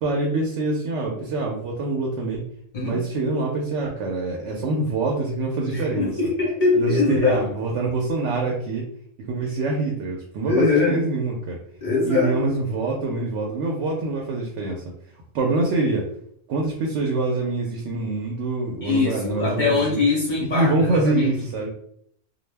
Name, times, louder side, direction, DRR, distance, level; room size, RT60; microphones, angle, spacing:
voice 1, 0.0-2.4 2.8-6.1 6.8-8.9 9.3-11.6 12.1-14.8 15.3-16.1 16.5-20.0 20.5-21.7, right 2 dB, 70° right, 0 dB, 0.8 m, -25 dB
voice 2, 5.7-7.4 10.5-11.1 11.8-12.4 18.8-21.3, left 4 dB, 50° left, -4 dB, 0.6 m, -22 dB
2.2 x 2.0 x 3.2 m, 0.66 s
omnidirectional pair, 1.4 m